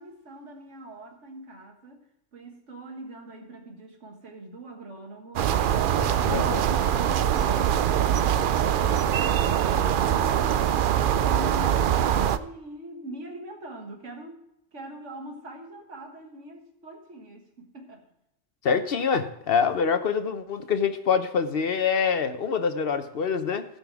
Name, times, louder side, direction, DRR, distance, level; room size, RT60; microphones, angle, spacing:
voice 1, 0.0-14.5 14.7-18.1, right 1 dB, 85° right, 1.9 m, -42 dB
sound 1, 5.4-12.4, right 10 dB, 60° right, 0.6 m, -23 dB
voice 2, 6.0-6.6 18.6-23.7, left 6 dB, 60° left, 0.9 m, -25 dB
16.0 x 5.5 x 4.6 m
omnidirectional pair, 1.2 m